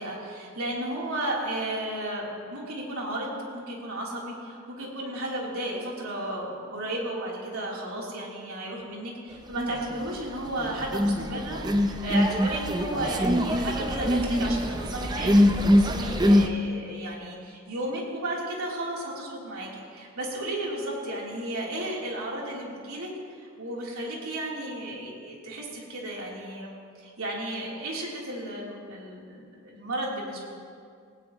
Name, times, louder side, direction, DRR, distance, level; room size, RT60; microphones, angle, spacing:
voice 1, 0.0-15.3 15.6-23.1 23.6-30.5, right 1 dB, 80° right, -4 dB, 3.4 m, -34 dB
sound 1, 9.6-10.2 10.5-16.5, equal, 20° right, 0.6 m, -24 dB
18.0 x 18.0 x 3.0 m, 2.3 s
head